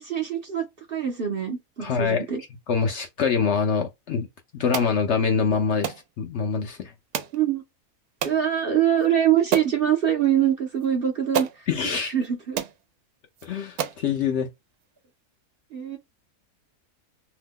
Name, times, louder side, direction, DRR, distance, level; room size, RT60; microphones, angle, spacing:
voice 1, 0.0-2.4 7.3-7.6 8.2-11.7 12.0-12.6 15.7-16.0, right 9 dB, 55° right, 0.7 m, -24 dB
voice 2, 1.8-2.2 2.7-4.3 4.5-6.9 11.7-12.1 13.4-14.5, left 6 dB, 65° left, 0.7 m, -25 dB
sound 1, 4.7-4.9 5.8-6.0 7.1-7.4 8.2-8.4 9.0-9.1 9.5-9.8 10.8-10.9 11.3-11.6 12.2-12.3 12.6-12.8 13.4-13.5 13.8-14.0, right 9 dB, 90° right, 1.1 m, -29 dB
2.8 x 2.1 x 3.5 m
omnidirectional pair, 1.5 m